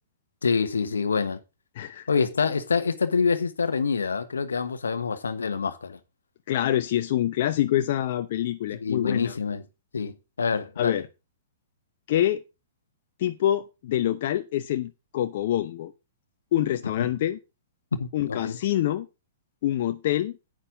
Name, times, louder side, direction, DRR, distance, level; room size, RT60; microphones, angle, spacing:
voice 1, 0.4-1.4 2.1-6.0 8.8-9.6 9.9-11.0 18.0-18.6, left 5 dB, 75° left, 1.2 m, -26 dB
voice 2, 1.7-2.1 6.5-9.3 10.8-11.1 12.1-12.4 13.2-15.9 16.5-17.4 18.1-19.1 19.6-20.3, left 12 dB, 50° left, 0.8 m, -26 dB
9.9 x 9.0 x 3.8 m
figure-of-eight pair, 110°, 0 cm